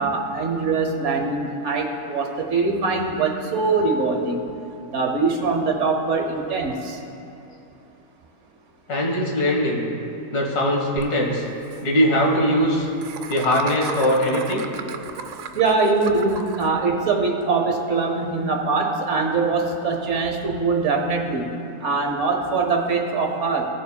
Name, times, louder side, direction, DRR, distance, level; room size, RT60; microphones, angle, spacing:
voice 1, 0.0-4.4 4.9-7.0 15.5-21.5 21.8-23.7, right 4 dB, 55° right, 3 dB, 1.1 m, -22 dB
voice 2, 8.9-9.9 10.3-11.5 11.8-12.9 13.3-14.7, equal, 85° left, -1 dB, 1.9 m, -21 dB
Laughter, 11.0-11.1 11.3-11.4 11.6-11.8 13.0-16.7, right 7 dB, 85° right, 1.1 m, -35 dB
17.0 x 7.1 x 2.2 m, 2.9 s
omnidirectional pair, 1.6 m